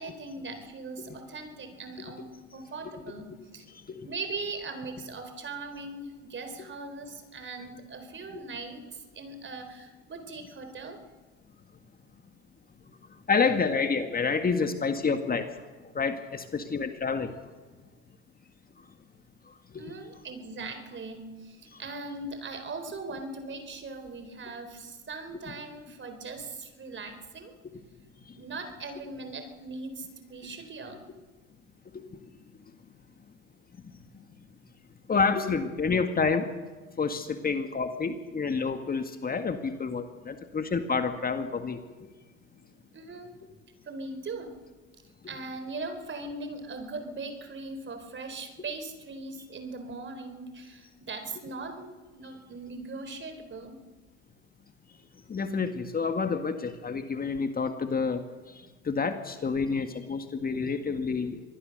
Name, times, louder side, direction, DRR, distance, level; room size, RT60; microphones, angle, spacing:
voice 1, 0.0-3.7 4.0-11.0 19.8-27.5 28.3-31.0 42.7-43.3 43.8-44.6 45.3-53.8, right 3 dB, 30° right, 8 dB, 4.1 m, -40 dB
voice 2, 13.1-17.3 18.8-18.9 19.5-19.8 21.7-21.8 28.2-28.4 31.9-32.2 33.8-34.2 35.1-36.5 37.0-42.1 55.3-58.2 58.5-61.4, left 5 dB, 25° left, 7 dB, 1.8 m, -29 dB
25.5 x 20.0 x 6.7 m, 1.3 s
hypercardioid pair, 75°, 37 cm